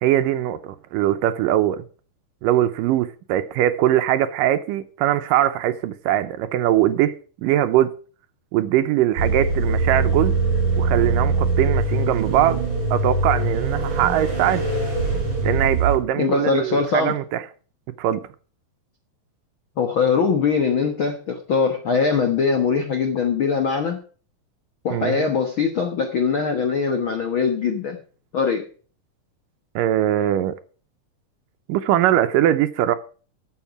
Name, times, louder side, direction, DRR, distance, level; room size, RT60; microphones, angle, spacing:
voice 1, 0.0-1.9 2.4-7.9 8.5-10.3 10.8-12.6 12.9-14.7 15.4-17.4 18.0-18.2 24.9-25.3 29.8-30.6 31.7-33.0, right 12 dB, 75° right, 2.1 m, -21 dB
sound 1, 9.2-16.0, right 3 dB, 40° right, 6.3 m, -22 dB
voice 2, 16.2-17.1 19.8-24.0 24.8-28.0 28.3-28.7, left 5 dB, 70° left, 1.2 m, -22 dB
13.0 x 7.2 x 5.8 m
omnidirectional pair, 4.2 m